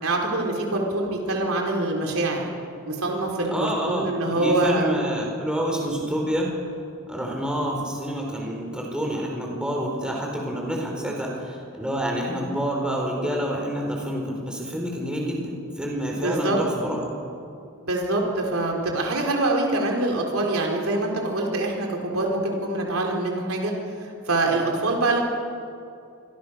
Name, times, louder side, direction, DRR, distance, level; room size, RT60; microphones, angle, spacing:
voice 1, 0.0-2.4 2.9-4.9 16.2-16.6 17.8-23.7 24.0-25.2, right 2 dB, 65° right, 0 dB, 4.3 m, -24 dB
voice 2, 3.5-6.5 7.0-17.1, equal, 5° right, -1 dB, 4.8 m, -28 dB
27.0 x 23.5 x 6.5 m, 2.5 s
head